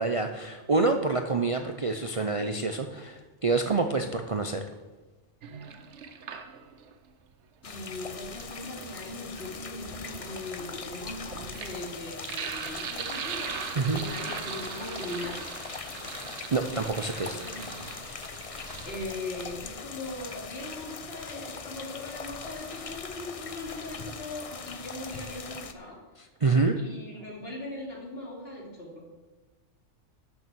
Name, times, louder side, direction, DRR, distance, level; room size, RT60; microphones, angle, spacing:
voice 1, 0.0-4.6 13.8-14.0 16.5-17.4 26.4-26.7, right 3 dB, 35° right, 5 dB, 0.6 m, -27 dB
Sink (filling or washing), 5.4-6.9 8.1-19.0, right 7 dB, 70° right, 1.1 m, -40 dB
voice 2, 7.6-15.5 17.2-18.1 18.8-26.0 26.8-29.0, left 2 dB, 55° left, -2 dB, 3.0 m, -40 dB
sound 1, 7.6-25.7, left 5 dB, 40° left, 0.6 m, -41 dB
12.0 x 6.8 x 6.2 m, 1.2 s
omnidirectional pair, 1.2 m